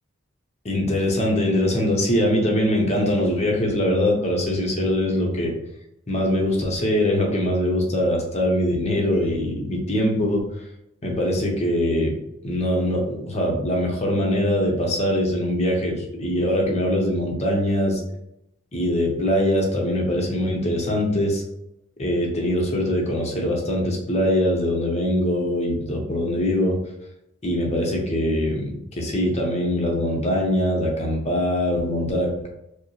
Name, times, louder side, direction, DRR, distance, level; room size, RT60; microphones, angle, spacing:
voice 1, 0.6-5.6 6.1-10.5 11.0-12.2 12.4-18.0 18.7-21.4 22.0-26.8 27.4-32.5, left 1 dB, 35° left, 0 dB, 0.9 m, -22 dB
5.1 x 2.1 x 3.1 m, 0.82 s
head